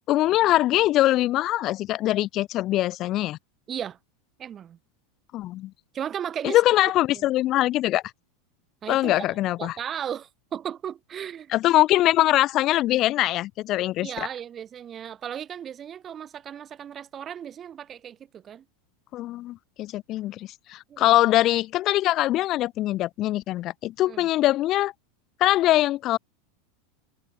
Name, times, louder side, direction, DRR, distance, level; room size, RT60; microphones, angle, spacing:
voice 1, 0.1-3.4 5.3-5.7 6.4-8.0 8.9-9.8 11.5-14.3 19.1-24.9 25.4-26.2, left 15 dB, 40° left, 4.5 m, -22 dB
voice 2, 3.7-4.0 4.4-4.8 5.9-6.6 8.8-9.2 9.6-11.5 14.0-18.6 20.9-21.1 24.1-24.3, right 9 dB, 30° right, 7.7 m, -35 dB
figure-of-eight pair, 85°, 0 cm